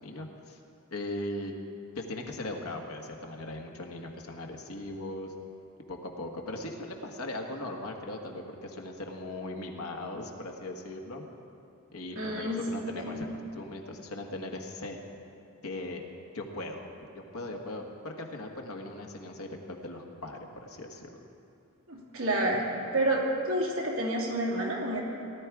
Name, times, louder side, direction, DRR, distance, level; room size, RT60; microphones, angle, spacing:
voice 1, 0.0-0.6 0.9-1.5 1.9-5.3 5.9-11.2 11.9-15.0 15.6-16.0 16.3-16.9 17.1-21.1, left 1 dB, 85° left, 2 dB, 1.5 m, -39 dB
voice 2, 12.1-12.6 12.9-13.3 21.9-22.6 22.9-25.0, right 1 dB, 65° right, -3 dB, 3.0 m, -29 dB
18.0 x 11.5 x 4.8 m, 2.6 s
head